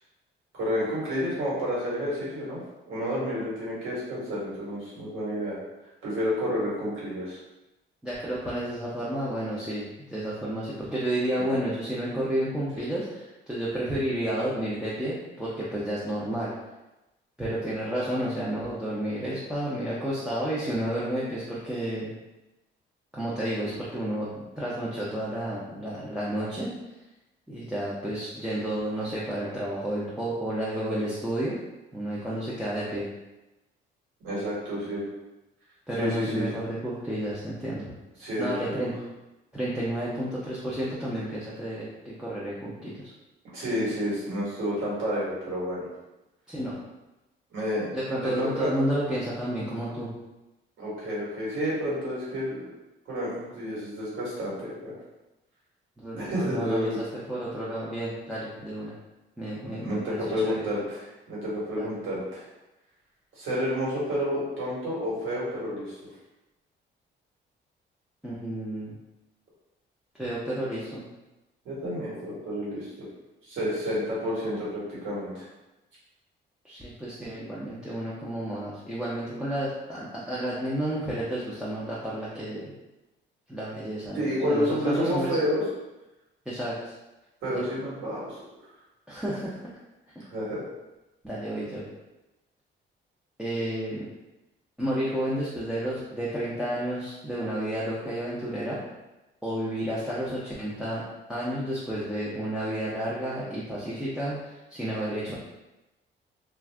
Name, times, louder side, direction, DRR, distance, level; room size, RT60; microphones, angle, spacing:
voice 1, 0.5-2.6 2.9-5.6 6.0-7.4 11.4-11.5 34.2-35.1 35.9-36.6 38.2-38.9 43.5-45.9 47.5-47.9 48.2-48.7 50.8-52.6 53.1-54.9 56.1-57.0 59.8-62.4 63.3-66.0 71.6-73.1 73.4-75.5 84.1-85.7 87.4-88.4 90.3-90.6, equal, 80° right, -6 dB, 1.5 m, -30 dB
voice 2, 8.0-16.5 17.4-22.2 23.1-26.7 27.5-31.6 31.9-33.1 35.9-37.9 38.4-38.9 39.5-43.1 46.5-46.8 47.9-50.1 56.0-58.9 59.4-60.5 61.8-61.9 68.2-69.0 70.2-71.0 76.6-82.7 83.5-85.4 86.5-86.9 87.5-87.7 89.1-89.6 91.2-91.8 93.4-94.0 94.8-98.8 99.4-101.0 101.3-105.3, right 1 dB, 5° right, -8 dB, 0.6 m, -31 dB
2.5 x 2.3 x 3.3 m, 1.0 s
cardioid pair, 90°, 20 cm